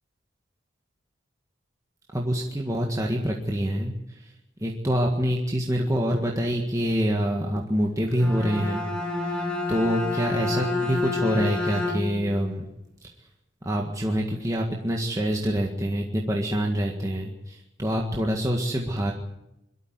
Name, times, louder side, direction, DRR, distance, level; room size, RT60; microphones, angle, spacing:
voice 1, 2.1-4.3 4.6-8.8 9.2-12.7 13.6-19.1, equal, 15° right, 0 dB, 1.7 m, -26 dB
Bowed string instrument, 8.1-12.4, left 3 dB, 5° left, 2.9 m, -29 dB
22.5 x 13.0 x 9.5 m, 0.90 s
head